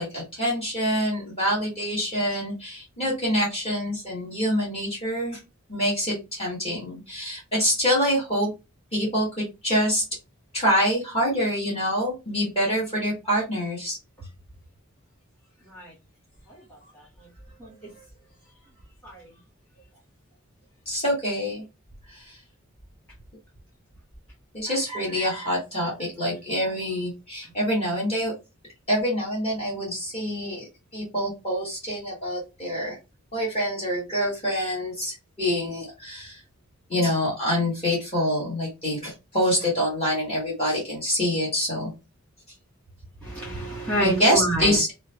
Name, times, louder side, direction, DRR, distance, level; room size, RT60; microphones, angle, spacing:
voice 1, 0.0-5.4 5.7-8.5 8.9-10.0 10.5-14.0 20.8-21.6 22.1-22.4 24.5-28.3 28.9-30.6 30.9-33.0 33.3-36.4 36.9-41.9 44.0-44.9, equal, 30° left, -6 dB, 1.5 m, -26 dB
voice 2, 16.5-17.0 17.6-17.9 19.0-19.3 43.2-44.8, right 1 dB, 5° left, -8 dB, 1.6 m, -29 dB
2.9 x 2.2 x 2.6 m, 0.26 s
head